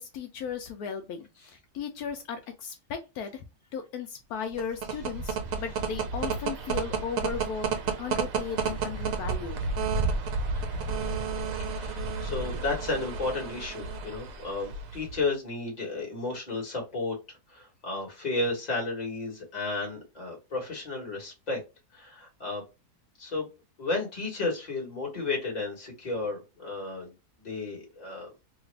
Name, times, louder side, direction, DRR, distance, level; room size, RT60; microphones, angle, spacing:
voice 1, 0.0-3.4 3.7-7.7 8.0-9.6, left 6 dB, 80° left, 1.1 m, -36 dB
sound 1, 4.4-15.2, right 4 dB, 65° right, 1.0 m, -31 dB
voice 2, 11.7-21.6 21.9-22.6 23.2-23.5 23.8-27.1 27.4-28.3, left 3 dB, 30° left, 1.4 m, -33 dB
3.0 x 2.4 x 3.2 m
omnidirectional pair, 1.6 m